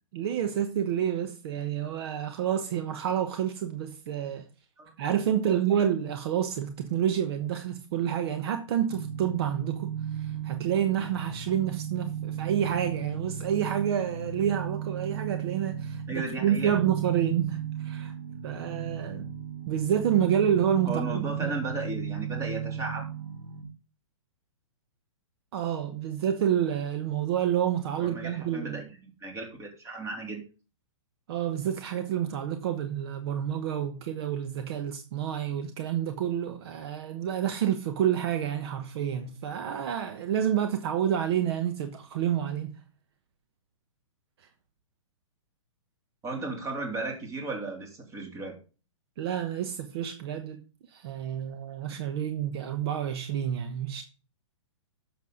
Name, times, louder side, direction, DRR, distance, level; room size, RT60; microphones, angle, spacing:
voice 1, 0.1-4.5 5.0-18.1 18.4-19.3 19.7-21.5 25.5-28.8 31.3-42.8 44.4-44.5 49.2-50.6 50.9-54.0, right 9 dB, 50° right, 1.2 m, -29 dB
sound 1, 8.9-23.6, right 8 dB, 80° right, 2.8 m, -35 dB
voice 2, 16.1-16.7 20.9-23.1 28.0-30.4 46.2-48.6, right 2 dB, 20° right, 3.3 m, -35 dB
11.0 x 7.1 x 3.9 m
hypercardioid pair, 130°, 16 cm